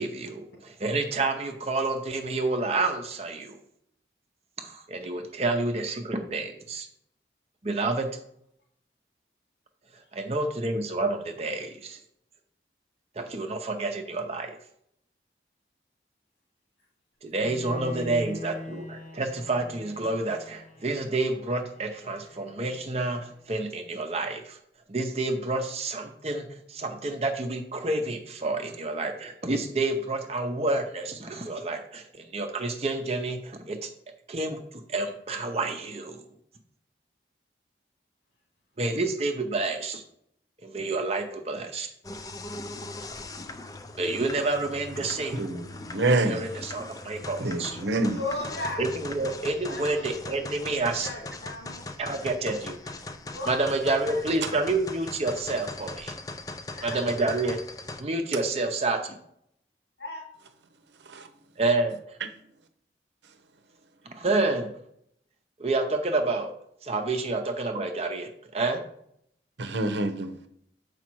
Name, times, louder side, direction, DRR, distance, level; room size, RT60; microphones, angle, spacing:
voice 1, 0.0-3.6 4.6-6.9 7.6-8.1 10.1-12.0 13.2-14.6 17.2-24.6 24.9-33.9 34.3-36.2 38.8-40.0 40.6-41.9 44.0-45.4 46.1-47.8 48.8-51.1 52.0-52.9 53.5-55.9 56.8-57.6 58.0-59.0 61.6-62.2 64.1-64.7 65.6-66.5 66.8-68.3 68.5-68.8, right 2 dB, 35° right, 0.6 m, -29 dB
Bowed string instrument, 17.4-23.4, left 2 dB, 45° left, 0.8 m, -43 dB
voice 2, 40.8-41.1 48.1-48.8 49.7-50.1 50.4-51.8 53.3-54.5 56.7-57.0 60.0-60.2, left 2 dB, 85° left, 2.5 m, -37 dB
sound 1, 42.0-58.0, left 2 dB, 20° left, 0.4 m, -40 dB
voice 3, 45.3-46.4 47.4-48.2 61.1-61.3 62.2-62.3 69.6-70.3, right 2 dB, 85° right, 0.8 m, -27 dB
7.2 x 5.0 x 4.6 m
head